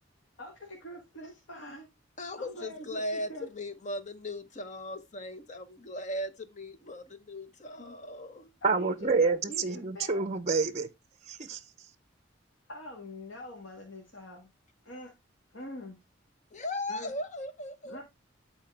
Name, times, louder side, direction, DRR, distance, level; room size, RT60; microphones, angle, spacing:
voice 1, 0.4-1.9 2.4-3.5 7.8-8.0 8.6-10.2 12.7-14.5 14.8-15.1 15.5-16.0 16.9-17.1 17.8-18.0, left 1 dB, 85° left, 1.9 m, -44 dB
voice 2, 2.2-8.5 16.5-18.0, left 1 dB, 40° left, 0.8 m, -38 dB
voice 3, 8.6-10.9 11.3-11.6, right 4 dB, 35° right, 0.6 m, -28 dB
11.5 x 4.4 x 3.3 m
head